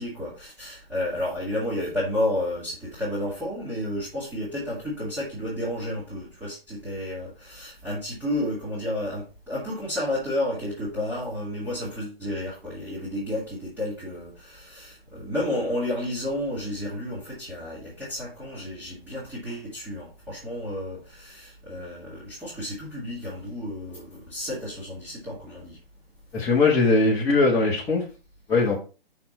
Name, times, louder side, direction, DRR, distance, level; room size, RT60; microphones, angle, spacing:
voice 1, 0.0-25.8, left 1 dB, 5° right, 2.5 m, -31 dB
voice 2, 26.3-28.0 28.5-28.8, left 3 dB, 10° left, 1.1 m, -20 dB
6.2 x 5.7 x 4.4 m
figure-of-eight pair, 140°, 30 cm